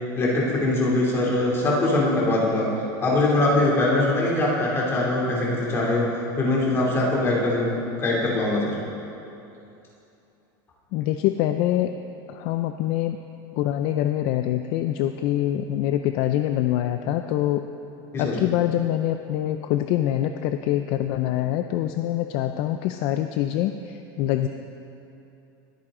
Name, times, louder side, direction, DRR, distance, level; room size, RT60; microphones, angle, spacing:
voice 1, 0.1-2.7 3.0-6.1 6.4-7.7 8.0-8.7 18.1-18.4, left 2 dB, 20° left, -4 dB, 2.9 m, -22 dB
voice 2, 10.9-11.9 12.3-13.2 13.5-17.6 18.2-24.5, left 12 dB, 50° left, 8 dB, 0.4 m, -25 dB
21.0 x 9.1 x 3.8 m, 2.7 s
supercardioid pair, 150°, 11 cm